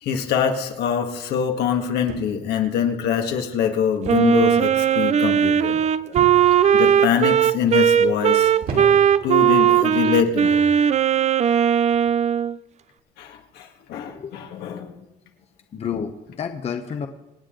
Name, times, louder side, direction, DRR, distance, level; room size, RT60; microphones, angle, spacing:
voice 1, 0.0-5.8 6.7-9.0 9.2-10.7 13.2-14.9, left 8 dB, 75° left, 3 dB, 1.9 m, -24 dB
sound 1, 2.1-2.6 4.0-4.4 4.7-5.1 6.1-6.7 7.4-7.8 8.6-9.3 10.2-10.5, right 3 dB, 60° right, 2.7 m, -34 dB
Wind instrument woodwind instrument, 4.1-12.6, right 9 dB, 40° right, 0.5 m, -18 dB
voice 2, 15.7-17.1, left 7 dB, 40° left, 6 dB, 1.0 m, -30 dB
26.0 x 8.7 x 3.9 m, 0.97 s
cardioid pair, 110°, 17 cm